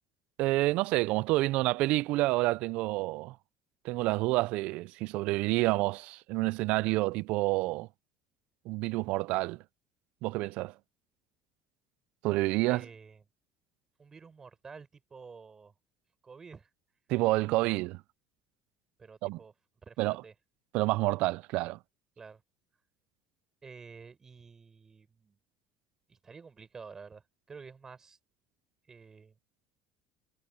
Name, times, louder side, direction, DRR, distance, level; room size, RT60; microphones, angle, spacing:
voice 1, 0.4-3.4 3.8-7.9 8.7-9.6 10.2-10.7 12.2-12.8 17.1-18.0 19.2-19.4 20.0-20.2 20.7-21.8, right 20 dB, 70° right, 0.5 m, -28 dB
voice 2, 12.7-13.2 14.0-15.7 16.2-16.7 19.0-19.5 19.8-20.3 22.2-22.4 23.6-25.4 26.1-28.2 28.9-29.3, right 5 dB, 25° right, 6.3 m, -50 dB
cardioid pair, 120°, 2 cm